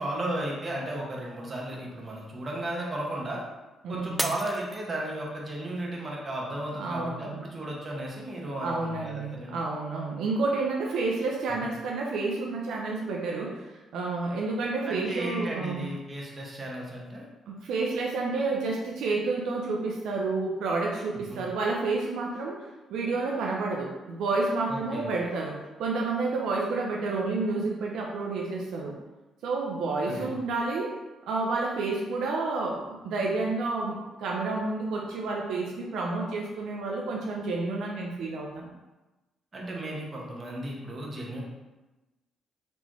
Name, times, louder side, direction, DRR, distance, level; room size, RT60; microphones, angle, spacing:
voice 1, 0.0-3.4 3.9-9.6 11.5-11.6 14.9-17.2 21.3-21.4 24.7-25.1 30.1-30.4 39.5-41.4, right 1 dB, 35° right, -2 dB, 1.1 m, -35 dB
voice 2, 3.8-4.3 6.8-7.4 8.6-15.8 17.5-22.6 22.9-29.0 29.4-30.9 31.3-38.7, right 3 dB, 80° right, -1 dB, 0.6 m, -30 dB
Shatter, 4.2-5.5 6.0-6.5 7.0-7.1, right 1 dB, 5° right, 0.3 m, -34 dB
4.3 x 3.3 x 3.0 m, 1.1 s
cardioid pair, 90°, 0 cm